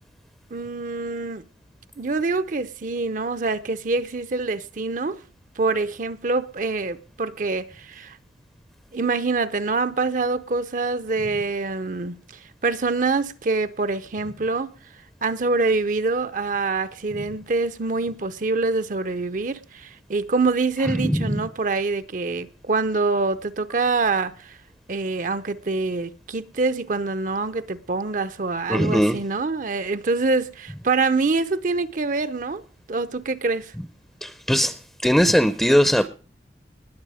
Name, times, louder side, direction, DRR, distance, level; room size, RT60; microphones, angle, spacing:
voice 1, 0.5-1.4 2.0-5.2 5.6-8.2 8.9-12.2 12.6-14.7 15.2-24.6 24.9-32.6 32.9-33.7, right 3 dB, 45° right, 0.6 m, -25 dB
voice 2, 20.9-21.4 28.7-29.2 34.2-34.8 35.0-36.1, equal, 5° left, 0.6 m, -20 dB
20.0 x 7.4 x 4.9 m
head